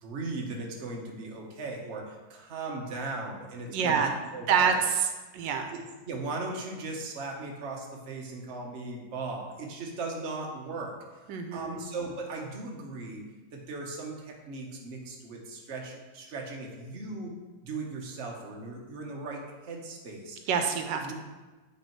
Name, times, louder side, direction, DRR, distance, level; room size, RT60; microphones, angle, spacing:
voice 1, 0.0-4.0 4.3-4.7 5.7-5.8 6.1-10.9 11.3-13.2 13.5-17.3 17.6-20.4 21.0-21.1, right 3 dB, 45° right, 0 dB, 1.1 m, -38 dB
voice 2, 3.7-4.1 4.5-5.1 5.3-5.7 11.3-11.8 20.5-21.1, right 6 dB, 85° right, 5 dB, 1.3 m, -26 dB
8.4 x 3.3 x 4.5 m, 1.2 s
omnidirectional pair, 1.9 m